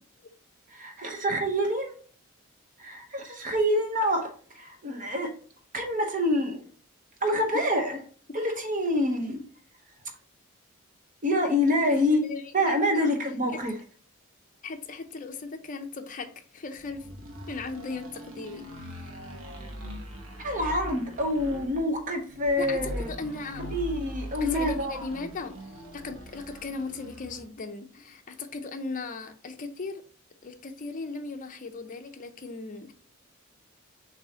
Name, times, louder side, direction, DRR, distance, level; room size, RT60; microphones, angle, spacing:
voice 1, 0.7-1.9 2.8-5.3 5.7-6.6 7.2-8.0 8.3-9.4 11.2-12.2 12.5-13.8 20.4-23.1 23.6-24.9, left 1 dB, 40° right, 0.8 m, -26 dB
voice 2, 11.9-13.1 13.5-13.6 14.6-17.1 17.5-18.7 18.9-19.1 22.6-23.9 24.4-25.6 25.9-30.0 30.4-32.9, left 3 dB, 40° left, 0.5 m, -37 dB
sound 1, 16.8-27.6, equal, 75° right, 1.0 m, -41 dB
6.3 x 2.7 x 2.8 m
head